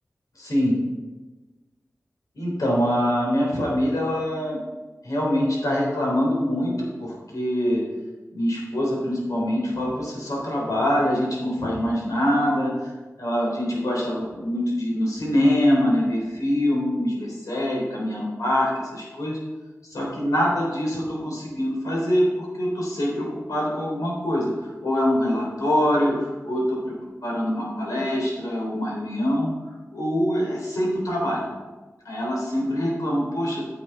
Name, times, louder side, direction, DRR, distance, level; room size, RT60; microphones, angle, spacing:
voice 1, 0.4-0.8 2.4-4.6 5.0-7.8 8.3-12.9 13.2-19.4 19.9-26.9 27.2-29.5 29.9-31.5 32.1-33.6, equal, 90° left, -3 dB, 3.6 m, -24 dB
10.0 x 7.9 x 4.0 m, 1.2 s
wide cardioid pair, 95°, 6 cm